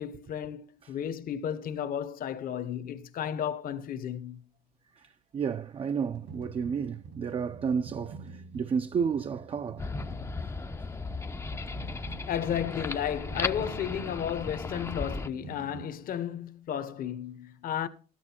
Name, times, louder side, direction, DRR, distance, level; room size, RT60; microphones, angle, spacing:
voice 1, 0.0-4.4 12.3-17.9, left 9 dB, 55° left, 1.0 m, -33 dB
voice 2, 5.0-9.8, right 6 dB, 35° right, 0.4 m, -31 dB
sound 1, 6.1-15.9, right 4 dB, 80° right, 2.4 m, -47 dB
sound 2, 9.8-15.3, left 3 dB, 15° left, 0.5 m, -36 dB
12.5 x 8.8 x 4.4 m
cardioid pair, 110°, 17 cm